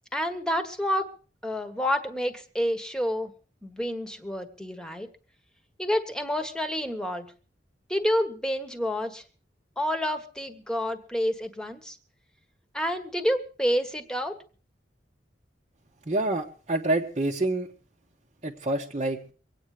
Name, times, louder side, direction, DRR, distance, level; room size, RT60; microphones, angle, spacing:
voice 1, 0.1-1.1 1.4-3.3 3.6-5.1 5.8-7.3 7.9-9.2 9.8-12.0 12.7-14.4, equal, 5° left, 7 dB, 1.4 m, -29 dB
voice 2, 16.1-17.7 18.4-19.2, right 2 dB, 35° right, -3 dB, 1.2 m, -27 dB
24.0 x 9.0 x 4.9 m, 0.38 s
head